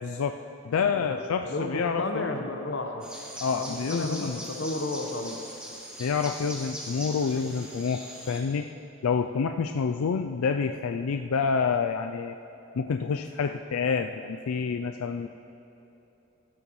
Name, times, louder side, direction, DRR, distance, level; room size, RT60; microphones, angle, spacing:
voice 1, 0.0-0.4 0.6-2.5 3.4-4.4 6.0-8.0 8.3-8.7 9.0-12.4 12.8-15.3, left 5 dB, 85° left, 6 dB, 0.4 m, -28 dB
voice 2, 0.7-3.1 3.5-5.4, left 2 dB, 55° left, 3 dB, 1.0 m, -33 dB
sound 1, 3.0-8.4, equal, 5° right, 1.3 m, -41 dB
14.5 x 12.0 x 3.1 m, 3.0 s
head